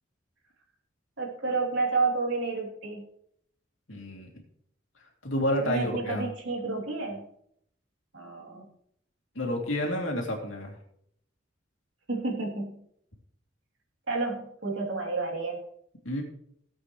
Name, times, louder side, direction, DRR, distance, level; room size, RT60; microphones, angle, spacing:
voice 1, 1.2-3.0 5.6-7.2 8.1-8.7 12.1-12.8 14.1-15.6, right 3 dB, 75° right, -1 dB, 3.3 m, -30 dB
voice 2, 3.9-4.3 5.2-6.2 9.3-10.7 16.0-16.2, left 1 dB, 85° left, 1 dB, 2.9 m, -29 dB
18.0 x 8.2 x 3.2 m, 0.71 s
head